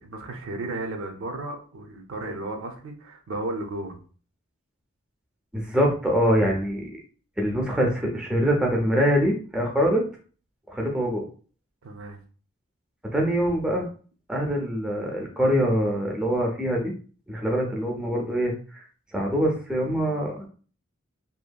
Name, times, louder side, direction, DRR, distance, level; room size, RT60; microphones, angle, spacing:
voice 1, 0.0-4.0 11.8-12.2, right 2 dB, 75° right, 4 dB, 0.5 m, -34 dB
voice 2, 5.5-6.9 7.4-10.0 10.7-11.3 13.1-13.9 14.3-16.9 17.3-18.8 19.1-20.5, equal, 5° right, -1 dB, 0.5 m, -24 dB
2.7 x 2.5 x 2.2 m, 0.40 s
head